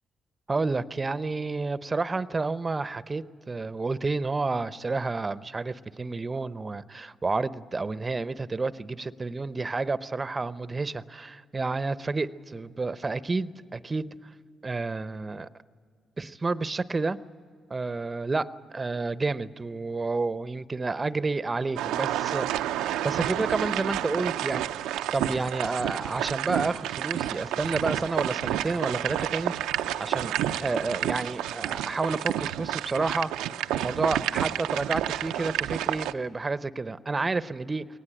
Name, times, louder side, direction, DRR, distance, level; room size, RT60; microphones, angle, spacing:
voice 1, 0.5-14.1 14.6-15.5 16.2-17.2 17.7-22.5 22.8-24.7 25.1-29.5 30.0-30.3 30.6-33.3 33.8-37.9, right 3 dB, 30° right, 15 dB, 0.7 m, -30 dB
sound 1, 21.8-36.1, right 12 dB, 85° right, 0.5 m, -30 dB
22.5 x 19.0 x 8.9 m, 2.2 s
supercardioid pair, 55°, 0 cm